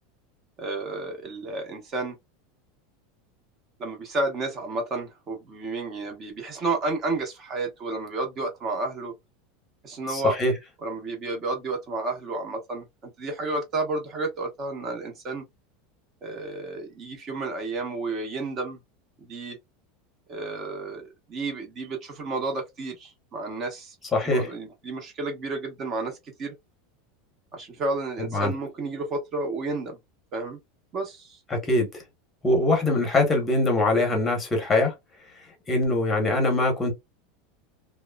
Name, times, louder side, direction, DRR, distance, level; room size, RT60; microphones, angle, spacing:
voice 1, 0.6-2.2 3.8-9.1 9.8-10.3 10.8-15.4 16.2-18.8 19.2-19.6 20.3-23.9 24.2-26.5 27.5-30.0 30.3-30.6 30.9-31.4, right 3 dB, 25° right, 0.8 m, -31 dB
voice 2, 10.1-10.5 24.1-24.5 28.2-28.5 31.5-32.0 32.4-34.9 35.7-36.9, left 2 dB, 15° left, 1.0 m, -23 dB
2.9 x 2.1 x 2.2 m
supercardioid pair, 165°, 0 cm